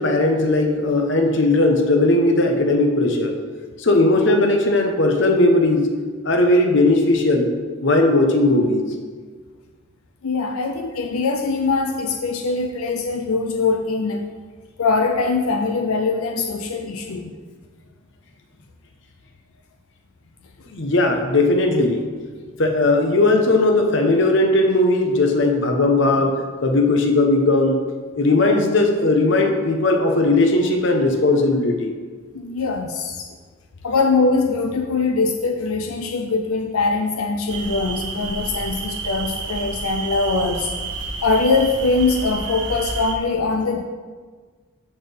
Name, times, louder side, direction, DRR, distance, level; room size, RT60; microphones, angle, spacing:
voice 1, 0.0-3.3 3.8-5.9 6.2-7.5 7.8-8.9 20.7-22.0 22.6-26.4 26.6-27.8 28.2-31.9, left 2 dB, 55° left, 3 dB, 0.9 m, -17 dB
voice 2, 10.2-14.2 14.8-17.3 32.3-33.3 33.8-40.7 41.2-43.8, left 3 dB, 85° left, 4 dB, 0.6 m, -22 dB
sound 1, 37.5-43.1, right 4 dB, 55° right, 0.8 m, -30 dB
13.0 x 4.4 x 3.4 m, 1.5 s
head